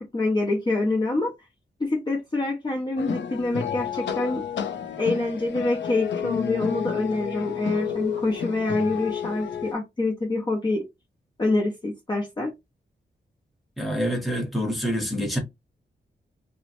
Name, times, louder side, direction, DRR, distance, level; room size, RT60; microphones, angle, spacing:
voice 1, 0.0-1.3 1.8-4.4 5.0-10.8 11.4-12.5, left 2 dB, 25° left, 0.6 m, -26 dB
sound 1, 3.0-9.7, left 8 dB, 85° left, 0.4 m, -30 dB
voice 2, 13.8-15.4, equal, ahead, 0.9 m, -26 dB
3.0 x 2.0 x 2.9 m
wide cardioid pair, 150°, 18 cm